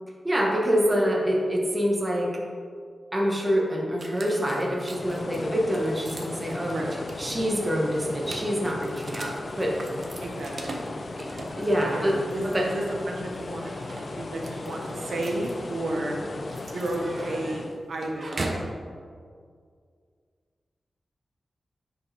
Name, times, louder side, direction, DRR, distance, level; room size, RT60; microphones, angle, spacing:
voice 1, 0.2-2.3 3.1-6.8 7.2-9.8 11.2-11.3 11.5-12.2 12.4-12.6, equal, 20° right, -2 dB, 1.4 m, -26 dB
sound 1, 4.0-18.7, right 2 dB, 50° right, 0.8 m, -41 dB
sound 2, 4.8-17.8, left 2 dB, 50° left, 0.5 m, -37 dB
voice 2, 10.2-10.8 11.9-13.7 14.1-16.2 16.6-18.7, right 1 dB, 85° right, -1 dB, 1.0 m, -32 dB
9.8 x 4.9 x 3.4 m, 2.1 s
wide cardioid pair, 100°, 0 cm